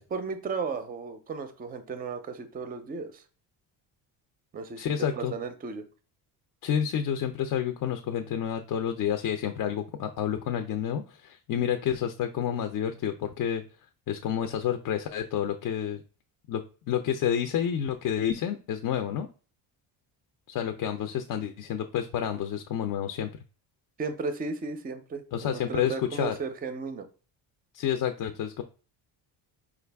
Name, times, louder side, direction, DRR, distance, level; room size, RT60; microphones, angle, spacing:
voice 1, 0.0-3.2 4.5-4.9 5.2-5.9 24.0-27.1, right 4 dB, 20° right, 9 dB, 0.4 m, -35 dB
voice 2, 4.8-5.3 6.6-13.6 14.1-16.0 16.5-19.3 20.5-23.3 25.3-26.3 27.7-28.6, left 9 dB, 50° left, 6 dB, 0.5 m, -29 dB
4.9 x 2.4 x 3.4 m, 0.36 s
cardioid pair, 140°, 42 cm